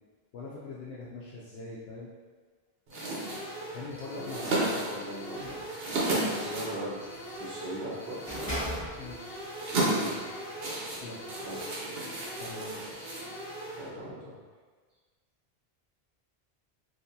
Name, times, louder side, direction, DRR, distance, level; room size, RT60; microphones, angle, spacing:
voice 1, 0.3-2.1 3.7-4.7 9.0-10.3 11.0-11.4 12.2-13.0, left 3 dB, 75° left, -7 dB, 0.8 m, -43 dB
sound 1, 2.9-13.9, right 1 dB, 50° right, 1.0 m, -42 dB
sound 2, 2.9-13.8, right 2 dB, 70° right, 1.0 m, -35 dB
voice 2, 4.1-7.0 7.4-8.5 11.4-12.2 13.7-14.4, right 1 dB, 25° right, -8 dB, 0.9 m, -40 dB
sound 3, 4.6-7.7 8.2-9.3 9.7-11.1, equal, 10° left, 1.0 m, -42 dB
4.0 x 2.5 x 2.7 m, 1.5 s
omnidirectional pair, 1.0 m